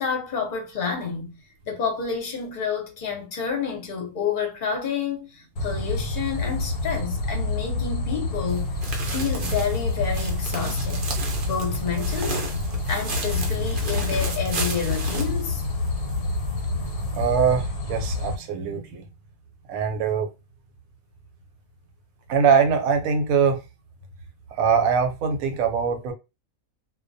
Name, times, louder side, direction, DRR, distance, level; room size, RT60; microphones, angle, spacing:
voice 1, 0.0-1.3 1.7-8.7 9.1-11.1 11.5-12.5 12.9-15.6, left 6 dB, 45° left, 0.7 m, -29 dB
sound 1, 5.6-18.4, left 2 dB, 90° left, 1.1 m, -27 dB
sound 2, 8.5-16.2 16.5-16.6 17.1-17.2, right 4 dB, 55° right, 0.6 m, -34 dB
voice 2, 17.1-19.0 19.7-20.3 22.3-23.6 24.5-26.1, right 6 dB, 75° right, 1.0 m, -22 dB
2.2 x 2.2 x 2.5 m
omnidirectional pair, 1.5 m